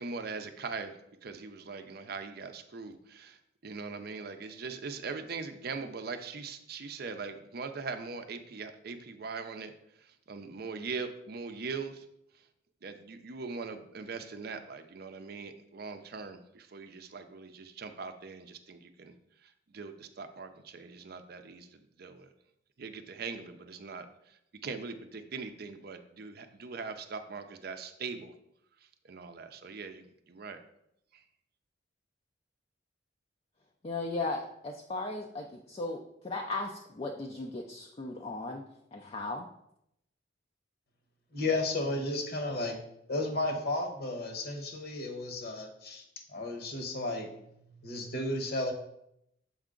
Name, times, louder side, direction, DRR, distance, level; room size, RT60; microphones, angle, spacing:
voice 1, 0.0-0.9 1.2-3.3 3.6-9.7 10.3-12.0 12.8-19.1 19.7-21.7 22.0-22.3 22.8-24.1 24.6-28.3 29.1-30.0 30.3-30.6, right 4 dB, 50° right, 8 dB, 0.5 m, -41 dB
voice 2, 33.8-38.6 38.9-39.5, left 2 dB, 30° left, 2 dB, 0.4 m, -36 dB
voice 3, 41.3-42.8 43.1-46.0 46.3-47.3 47.8-48.7, left 2 dB, 55° left, 4 dB, 1.1 m, -33 dB
7.1 x 4.5 x 3.8 m, 0.78 s
head